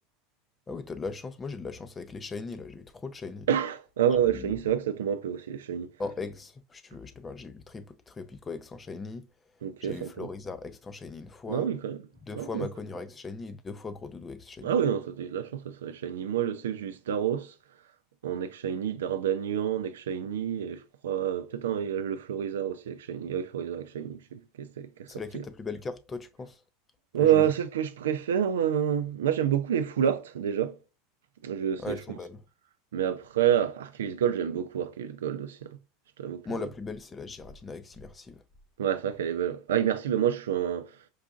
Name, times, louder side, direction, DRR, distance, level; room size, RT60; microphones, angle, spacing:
voice 1, 0.7-3.5 4.2-4.5 6.0-9.3 9.8-11.7 12.3-14.7 25.1-26.6 27.2-27.5 31.8-32.4 36.4-38.4, left 4 dB, 20° left, 0.5 m, -39 dB
voice 2, 3.5-5.9 9.6-10.3 11.5-12.0 12.3-12.7 14.6-17.5 18.2-25.4 27.1-30.8 31.4-32.2 32.9-35.8 36.2-36.5 38.8-41.0, right 9 dB, 85° right, 0.4 m, -28 dB
4.7 x 2.5 x 2.3 m
hypercardioid pair, 100°, 0 cm